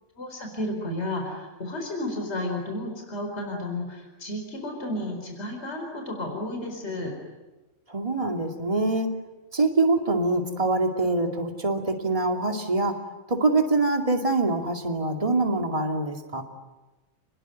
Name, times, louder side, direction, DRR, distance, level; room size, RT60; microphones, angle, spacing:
voice 1, 0.2-7.1, left 1 dB, 55° left, 2 dB, 4.8 m, -32 dB
voice 2, 7.9-9.1 9.5-13.0 13.3-16.4, right 2 dB, 25° right, 3 dB, 2.5 m, -24 dB
29.5 x 21.0 x 9.3 m, 1.1 s
omnidirectional pair, 1.4 m